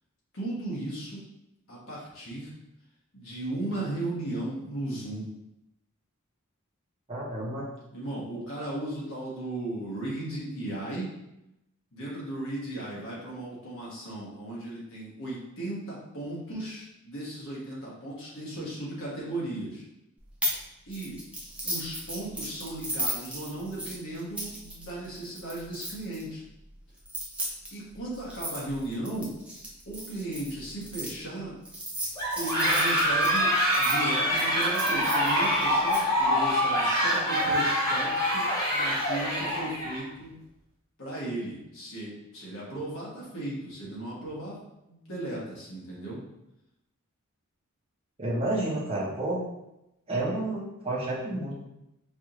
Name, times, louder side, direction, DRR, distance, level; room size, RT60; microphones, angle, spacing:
voice 1, 0.3-1.2 1.7-2.5 3.1-5.2 7.9-11.1 11.9-19.8 20.9-21.2 21.6-26.4 27.7-29.3 29.9-31.5 32.3-33.5 33.8-40.3 41.0-44.6 44.8-46.2, right 1 dB, 60° left, -5 dB, 1.4 m, -36 dB
voice 2, 7.1-7.6 48.2-49.4 50.1-51.6, right 2 dB, 25° right, -6 dB, 0.9 m, -30 dB
sound 1, 20.4-20.6 20.9-26.2 27.0-31.1 31.7-34.0 34.4-36.0, right 1 dB, 5° right, 0.7 m, -35 dB
sound 2, 32.2-40.0, equal, 15° left, 1.1 m, -25 dB
4.9 x 2.6 x 3.0 m, 0.87 s
head